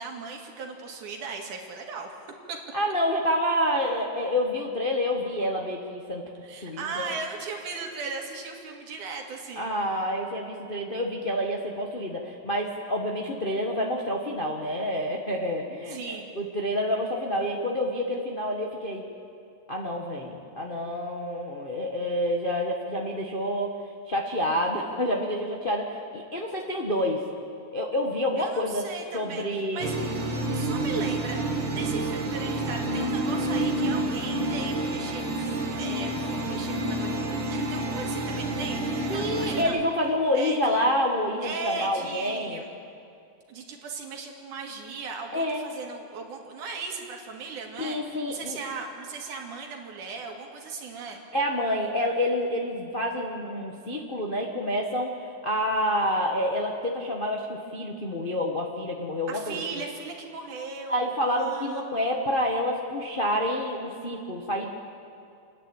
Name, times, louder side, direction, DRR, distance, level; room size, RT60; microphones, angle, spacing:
voice 1, 0.0-2.6 6.4-10.0 15.9-16.3 28.4-30.0 30.5-31.4 31.7-39.9 40.3-40.8 41.4-42.7 43.5-51.2 59.3-62.0, right 4 dB, 80° right, 2 dB, 3.4 m, -37 dB
voice 2, 2.7-6.2 6.6-7.1 9.6-16.0 16.3-19.0 19.7-23.7 24.1-27.2 27.7-28.8 29.1-30.1 39.1-42.6 45.3-45.7 47.8-48.6 51.3-55.1 55.4-59.8 60.9-64.7, left 1 dB, 45° left, 0 dB, 0.7 m, -28 dB
sound 1, 29.8-39.6, right 1 dB, 45° right, 2.0 m, -29 dB
28.5 x 10.5 x 8.9 m, 2.5 s
omnidirectional pair, 3.5 m